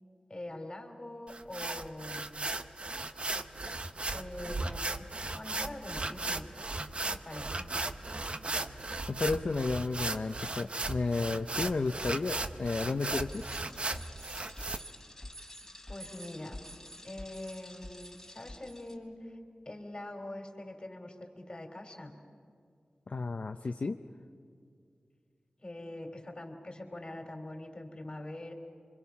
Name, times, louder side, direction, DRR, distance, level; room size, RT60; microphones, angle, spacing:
voice 1, 0.3-2.4 4.1-6.4 7.0-7.7 15.9-16.6 17.0-19.4 19.7-22.1 25.6-28.5, left 1 dB, 35° left, 3 dB, 3.6 m, -44 dB
sound 1, 1.3-14.8, right 2 dB, 45° right, 0.9 m, -36 dB
voice 2, 9.1-13.4 23.1-24.0, left 3 dB, 60° left, 5 dB, 0.7 m, -32 dB
Bicycle, 13.3-18.9, left 1 dB, 15° left, 3.9 m, -48 dB
26.0 x 25.0 x 5.9 m, 2.3 s
wide cardioid pair, 70°, 3 cm